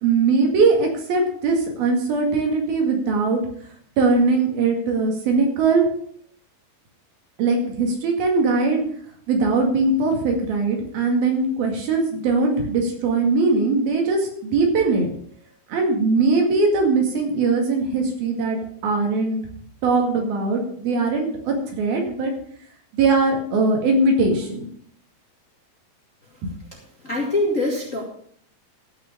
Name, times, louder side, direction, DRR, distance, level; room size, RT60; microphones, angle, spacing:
voice 1, 0.0-3.4 4.0-5.9 7.4-8.8 9.3-15.1 15.7-19.4 19.8-22.3 22.9-24.7 26.4-26.5, right 3 dB, 75° right, 2 dB, 4.0 m, -20 dB
voice 2, 27.0-28.0, left 2 dB, 30° left, -2 dB, 1.8 m, -23 dB
14.0 x 6.0 x 6.7 m, 0.62 s
omnidirectional pair, 4.3 m